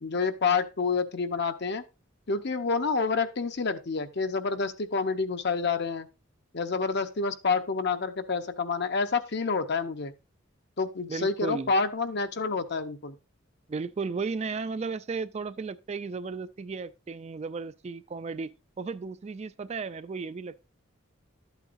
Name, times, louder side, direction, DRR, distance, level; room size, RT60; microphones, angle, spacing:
voice 1, 0.0-1.8 2.3-6.1 6.5-10.1 10.8-13.2, left 4 dB, 55° left, 0.8 m, -28 dB
voice 2, 11.1-11.7 13.7-20.6, right 4 dB, 30° right, 0.4 m, -35 dB
12.0 x 8.2 x 2.5 m
head